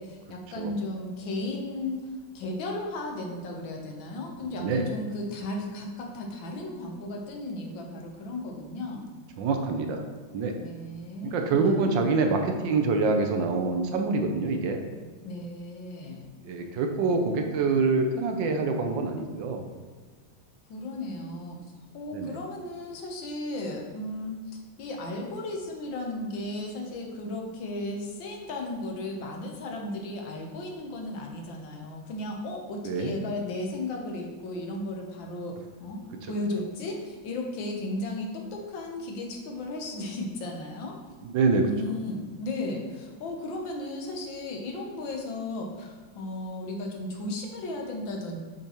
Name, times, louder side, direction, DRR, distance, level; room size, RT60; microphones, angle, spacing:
voice 1, 0.0-9.1 10.6-11.8 15.2-16.3 20.7-21.6 21.9-41.0 41.6-48.4, left 2 dB, 75° left, 1 dB, 1.6 m, -35 dB
voice 2, 4.4-4.8 9.4-10.0 10.3-10.5 11.2-14.8 16.4-19.7 22.1-22.4 32.8-33.1 41.2-41.7, right 4 dB, 75° right, 4 dB, 1.3 m, -26 dB
8.0 x 5.1 x 2.9 m, 1.4 s
omnidirectional pair, 2.2 m